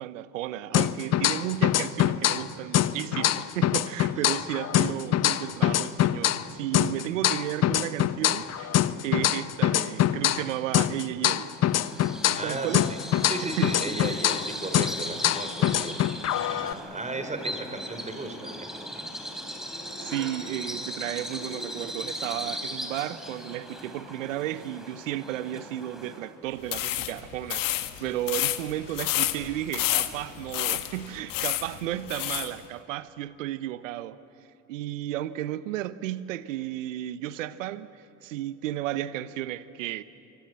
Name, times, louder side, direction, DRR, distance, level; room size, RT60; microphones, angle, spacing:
voice 1, 0.0-11.5 12.3-12.9 13.4-13.7 20.0-27.7 28.0-34.2 34.7-40.0, right 13 dB, 85° right, 0.8 m, -33 dB
sound 1, 0.7-2.5 2.7-6.5 6.7-10.5 10.7-14.5 14.7-16.7, left 11 dB, 45° left, 1.0 m, -24 dB
voice 2, 4.0-4.4 12.4-13.0 13.2-18.9, right 2 dB, 20° right, 4.7 m, -36 dB
Bird vocalization bird call bird song, 11.6-26.4, equal, ahead, 4.0 m, -38 dB
sound 2, 26.6-32.5, left 15 dB, 60° left, 1.5 m, -30 dB
26.0 x 24.5 x 8.1 m
hypercardioid pair, 65°, 38 cm